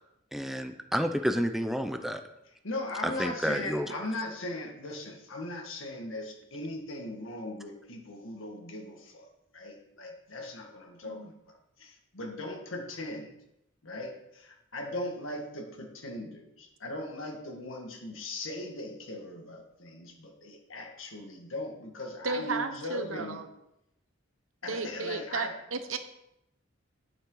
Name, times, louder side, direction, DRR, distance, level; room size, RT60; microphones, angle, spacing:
voice 1, 0.3-2.2 3.0-3.9, equal, ahead, 7 dB, 0.6 m, -30 dB
voice 2, 2.6-9.3 9.5-11.3 11.8-13.3 13.8-23.4 24.6-25.5, left 1 dB, 70° left, 1 dB, 1.8 m, -39 dB
voice 3, 22.2-23.5 24.7-26.0, right 4 dB, 75° right, 8 dB, 1.0 m, -34 dB
9.9 x 8.7 x 3.9 m, 0.84 s
head